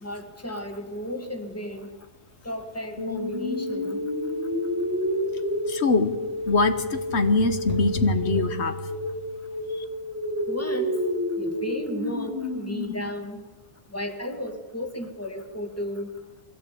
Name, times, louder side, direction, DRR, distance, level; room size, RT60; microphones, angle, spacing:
voice 1, 0.0-1.9 2.4-4.0 10.5-11.0 11.4-13.4 13.9-16.1, equal, 15° left, 5 dB, 2.0 m, -34 dB
sound 1, 3.0-13.0, left 1 dB, 60° left, 6.0 m, -29 dB
voice 2, 5.7-6.2 6.5-8.7, left 3 dB, 85° left, 9 dB, 1.4 m, -23 dB
21.5 x 16.0 x 8.6 m, 1.2 s
omnidirectional pair, 1.1 m